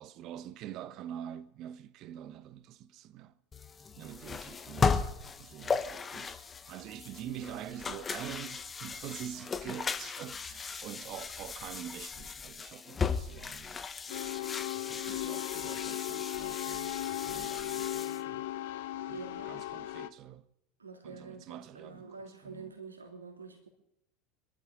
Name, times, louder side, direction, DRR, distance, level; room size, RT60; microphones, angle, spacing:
voice 1, 0.0-3.3 4.0-6.4 6.7-13.8 14.9-18.5 19.1-20.5 21.0-22.2 22.4-22.8, right 11 dB, 45° right, 1.0 m, -45 dB
sound 1, 3.5-18.2, left 5 dB, 25° left, 1.3 m, -36 dB
sound 2, 14.1-20.1, left 15 dB, 60° left, 0.7 m, -37 dB
voice 2, 19.1-19.5 20.8-23.7, right 4 dB, 85° right, 3.0 m, -47 dB
26.0 x 12.5 x 3.9 m
figure-of-eight pair, 75°, 0 cm